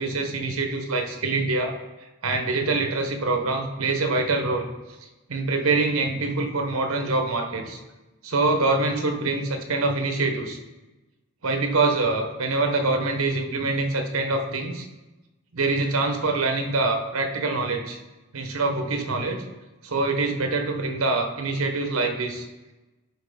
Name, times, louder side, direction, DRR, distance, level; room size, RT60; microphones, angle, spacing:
voice 1, 0.0-1.8 2.2-4.7 5.3-7.8 8.2-10.6 11.4-14.9 15.5-18.0 18.3-19.4 19.8-22.4, right 3 dB, 85° right, 4 dB, 1.0 m, -25 dB
10.5 x 4.3 x 3.6 m, 1.1 s
head